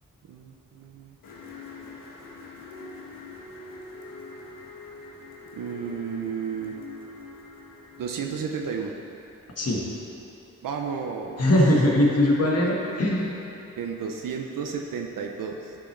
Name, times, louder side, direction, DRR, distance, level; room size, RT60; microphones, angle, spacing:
voice 1, 0.3-1.2 5.5-6.8 8.0-8.9 10.6-11.5 12.6-12.7 13.8-15.8, right 6 dB, 80° right, 2 dB, 0.7 m, -32 dB
sound 1, 1.2-8.0, left 3 dB, 90° left, 1.2 m, -43 dB
voice 2, 11.4-13.3, left 1 dB, 50° left, -3 dB, 1.5 m, -21 dB
11.5 x 6.1 x 3.3 m, 3.0 s
wide cardioid pair, 95°, 33 cm